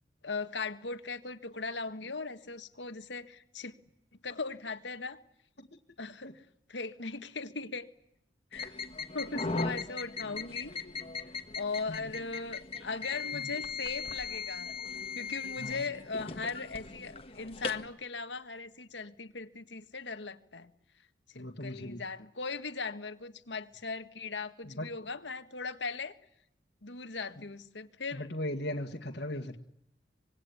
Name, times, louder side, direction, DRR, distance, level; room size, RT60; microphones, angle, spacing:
voice 1, 0.2-3.7 4.2-5.2 6.0-6.3 6.7-7.9 8.5-8.7 9.1-10.7 11.5-14.7 15.1-20.7 21.3-26.2 26.8-28.3, left 4 dB, 80° left, 9 dB, 1.7 m, -39 dB
sound 1, 8.5-17.9, left 4 dB, 30° left, 1.7 m, -38 dB
voice 2, 21.4-22.0 24.6-24.9 28.1-29.6, left 1 dB, 65° left, 0 dB, 2.0 m, -38 dB
26.0 x 20.5 x 9.9 m, 0.75 s
head